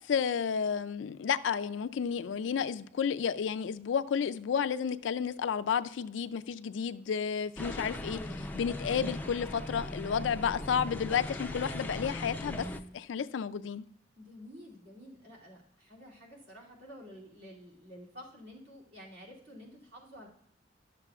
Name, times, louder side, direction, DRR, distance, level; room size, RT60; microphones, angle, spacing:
voice 1, 0.1-8.2 8.5-12.7 12.9-13.8, left 7 dB, 80° left, 0.4 m, -31 dB
sound 1, 7.6-12.8, left 1 dB, 10° left, 0.4 m, -39 dB
voice 2, 14.2-20.3, equal, 65° right, 2.6 m, -50 dB
12.0 x 6.9 x 2.4 m
head